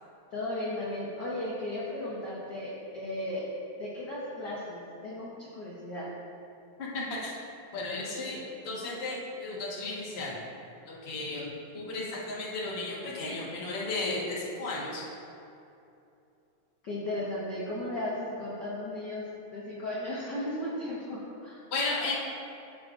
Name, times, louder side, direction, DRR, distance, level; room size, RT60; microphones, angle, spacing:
voice 1, 0.3-3.4 3.8-6.1 16.8-19.3 19.5-21.6, left 1 dB, 85° left, -7 dB, 0.9 m, -35 dB
voice 2, 6.8-7.4 7.7-8.4 8.6-10.4 10.9-15.0 21.7-22.1, left 2 dB, 65° left, -6 dB, 0.6 m, -34 dB
15.0 x 4.9 x 2.5 m, 2.7 s
omnidirectional pair, 3.5 m